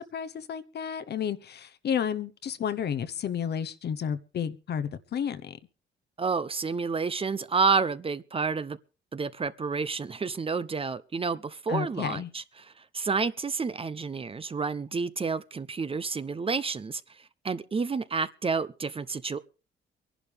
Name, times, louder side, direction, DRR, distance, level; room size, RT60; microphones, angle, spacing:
voice 1, 0.0-5.6 11.7-12.3, left 8 dB, 55° left, 1.0 m, -32 dB
voice 2, 6.2-8.8 9.1-19.4, right 4 dB, 30° right, 0.7 m, -30 dB
23.5 x 11.0 x 3.5 m
cardioid pair, 90°, 20 cm